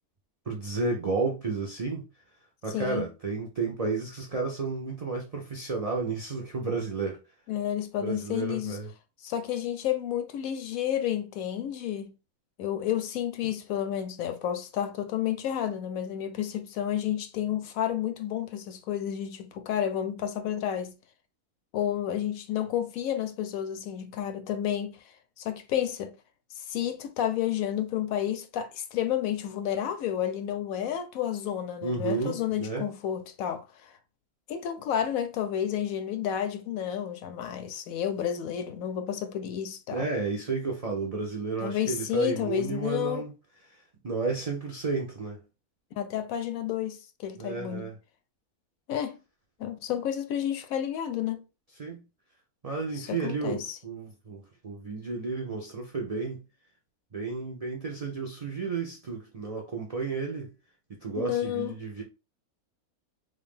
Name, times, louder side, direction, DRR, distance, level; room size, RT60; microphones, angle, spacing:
voice 1, 0.5-2.0 2.6-7.2 8.0-8.9 31.8-32.9 39.9-43.3 44.0-45.4 47.4-47.9 51.8-52.0 52.6-56.4 57.1-60.5 60.9-62.0, right 4 dB, 55° right, 0.4 m, -32 dB
voice 2, 2.7-3.1 7.5-8.8 9.2-12.1 12.6-21.0 21.7-25.0 25.4-26.1 26.7-33.9 34.5-40.1 41.6-43.3 46.0-47.9 48.9-49.2 49.6-51.4 52.9-53.8 61.2-61.8, left 10 dB, 70° left, 0.9 m, -31 dB
3.3 x 2.5 x 3.5 m
omnidirectional pair, 1.6 m